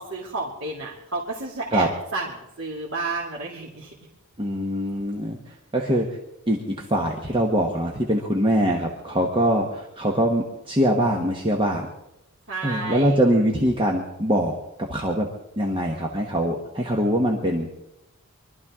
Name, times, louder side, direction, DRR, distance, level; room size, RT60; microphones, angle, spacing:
voice 1, 0.0-3.9 12.5-13.2, right 3 dB, 55° right, -4 dB, 2.5 m, -31 dB
voice 2, 4.4-5.4 5.7-6.2 6.5-11.9 12.6-14.5 14.9-15.3 15.6-17.8, equal, 25° right, 0 dB, 1.3 m, -23 dB
23.5 x 13.0 x 3.7 m, 0.88 s
head